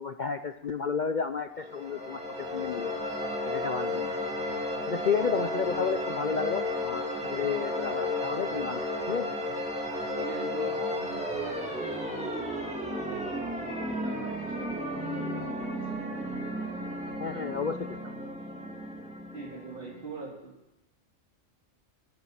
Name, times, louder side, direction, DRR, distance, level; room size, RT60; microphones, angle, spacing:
voice 1, 0.0-2.9 3.4-4.1 4.9-8.8 9.1-9.3 17.2-18.3, left 6 dB, 50° left, 8 dB, 0.6 m, -32 dB
sound 1, 1.6-20.2, left 1 dB, 5° right, 2.4 m, -33 dB
voice 2, 10.2-12.8 13.1-15.9 19.3-20.5, right 3 dB, 45° right, -3 dB, 3.7 m, -43 dB
18.5 x 7.4 x 7.5 m, 0.96 s
omnidirectional pair, 1.3 m